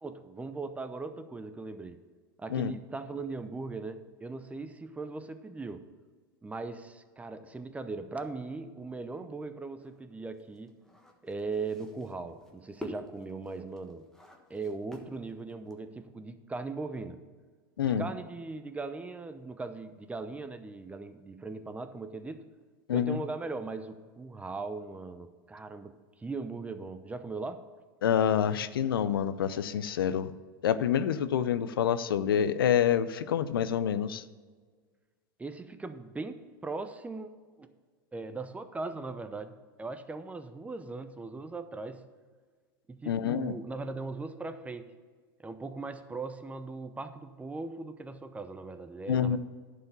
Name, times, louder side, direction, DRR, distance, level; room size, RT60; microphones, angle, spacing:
voice 1, 0.0-2.0 2.4-5.8 6.4-10.7 11.2-14.1 14.5-17.2 17.8-22.4 22.9-27.6 35.4-37.3 37.6-37.7 38.1-39.5 39.8-42.0 42.9-44.9 45.4-49.4, right 3 dB, 10° right, 10 dB, 0.7 m, -39 dB
sound 1, 9.8-16.0, left 1 dB, 5° left, 1.3 m, -48 dB
voice 2, 22.9-23.2 28.0-30.3 30.6-34.2 43.1-43.5 49.1-49.4, left 9 dB, 85° left, 14 dB, 0.5 m, -27 dB
11.0 x 4.9 x 6.9 m, 1.5 s
hypercardioid pair, 105°, 12 cm